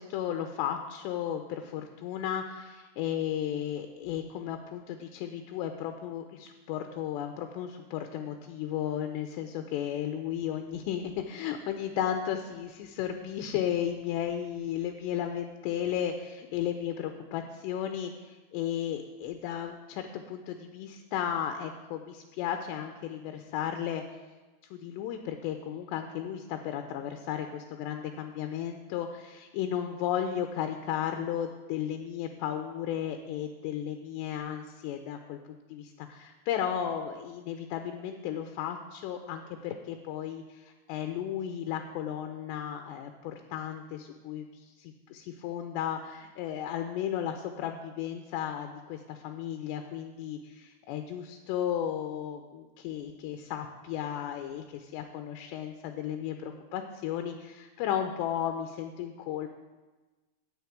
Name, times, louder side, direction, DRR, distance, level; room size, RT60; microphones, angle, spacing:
voice 1, 0.0-24.0 24.7-59.5, left 10 dB, 90° left, 6 dB, 2.9 m, -34 dB
9.4 x 6.2 x 8.5 m, 1.2 s
omnidirectional pair, 4.8 m